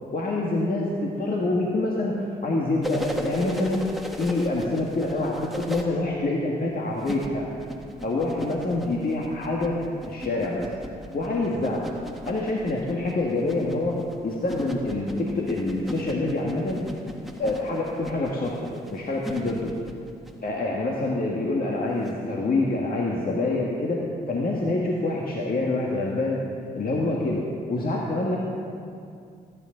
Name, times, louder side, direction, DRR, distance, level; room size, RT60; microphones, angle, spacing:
voice 1, 0.1-3.9 4.2-7.5 8.0-9.8 10.1-10.7 11.1-11.9 12.3-16.8 17.4-19.7 20.4-26.4 26.7-27.4 27.7-28.4, left 2 dB, 55° left, -3 dB, 1.8 m, -26 dB
sound 1, 2.8-5.8 7.0-20.4 22.1-22.2, equal, ahead, 1.8 m, -36 dB
18.5 x 9.9 x 3.9 m, 2.4 s
supercardioid pair, 50°, 18 cm